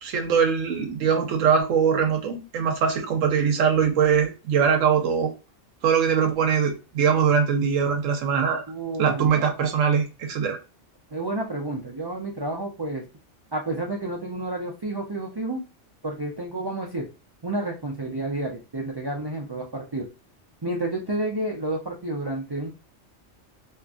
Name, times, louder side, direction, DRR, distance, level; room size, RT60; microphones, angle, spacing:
voice 1, 0.0-5.3 5.8-8.6 9.0-10.6, right 7 dB, 85° right, 1.0 m, -22 dB
voice 2, 8.7-9.4 11.1-13.0 13.5-15.6 16.0-17.1 17.4-20.1 20.6-22.7, right 2 dB, 40° right, 0.3 m, -30 dB
2.8 x 2.5 x 2.3 m
omnidirectional pair, 1.3 m